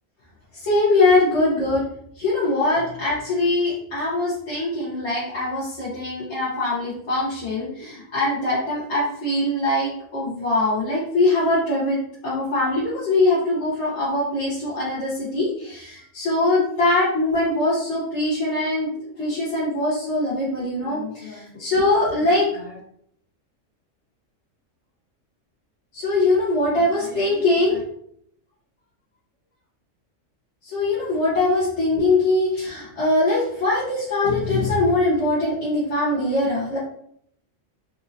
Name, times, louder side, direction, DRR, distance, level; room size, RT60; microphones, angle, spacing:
voice 1, 0.6-1.8 2.2-18.9 19.2-22.8 25.9-27.8 30.7-36.8, left 2 dB, 60° left, -9 dB, 1.3 m, -22 dB
4.0 x 2.7 x 2.6 m, 0.70 s
omnidirectional pair, 1.3 m